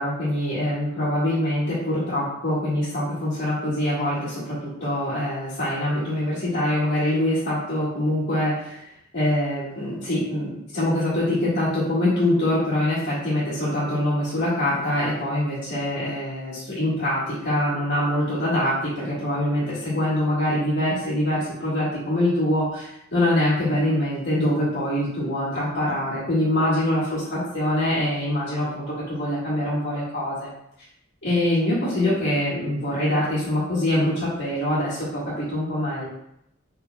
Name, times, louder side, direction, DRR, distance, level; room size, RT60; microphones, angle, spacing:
voice 1, 0.0-8.8 9.1-30.5 31.2-36.1, left 1 dB, 60° left, -11 dB, 1.6 m, -24 dB
5.0 x 4.6 x 2.2 m, 0.78 s
head